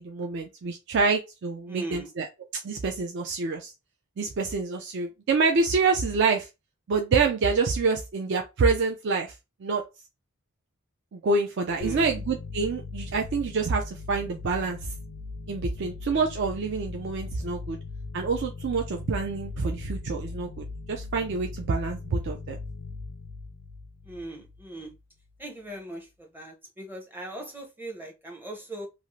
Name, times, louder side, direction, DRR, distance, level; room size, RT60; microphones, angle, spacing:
voice 1, 0.0-2.3 2.6-3.7 4.2-6.5 6.9-9.3 9.6-9.8 11.1-14.9 15.5-17.8 18.1-22.6, right 4 dB, 50° right, 0.4 m, -27 dB
voice 2, 1.7-2.1 11.8-12.2 24.0-24.9 25.4-28.9, right 2 dB, 10° right, 0.6 m, -39 dB
sound 1, 11.8-25.0, left 3 dB, 85° left, 0.5 m, -39 dB
2.5 x 2.4 x 3.0 m
head